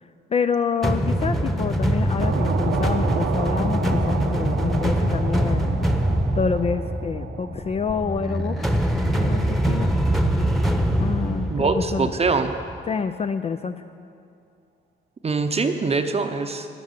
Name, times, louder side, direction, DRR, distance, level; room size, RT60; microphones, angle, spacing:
voice 1, 0.3-5.9 6.3-8.7 9.1-9.9 11.0-12.1 12.9-13.8, left 5 dB, 30° left, 9 dB, 0.4 m, -27 dB
sound 1, 0.8-12.7, right 1 dB, ahead, 1.1 m, -23 dB
sound 2, 2.2-10.2, right 7 dB, 90° right, 0.9 m, -33 dB
voice 2, 11.5-12.5 15.2-16.8, right 4 dB, 30° right, 6 dB, 0.7 m, -23 dB
12.0 x 10.5 x 6.7 m, 2.4 s
cardioid pair, 90°, 20 cm